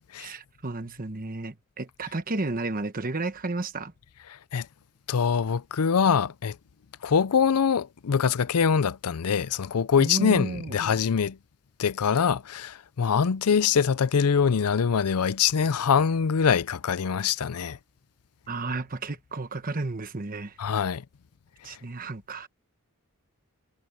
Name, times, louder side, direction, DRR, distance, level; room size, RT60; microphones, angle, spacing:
voice 1, 0.2-3.9 10.0-10.8 18.5-20.6 21.6-22.5, right 2 dB, 40° right, 1.2 m, -32 dB
voice 2, 4.3-4.7 5.1-6.6 7.0-11.4 11.8-17.8 20.6-21.0 21.7-21.8, left 6 dB, 85° left, 0.5 m, -24 dB
head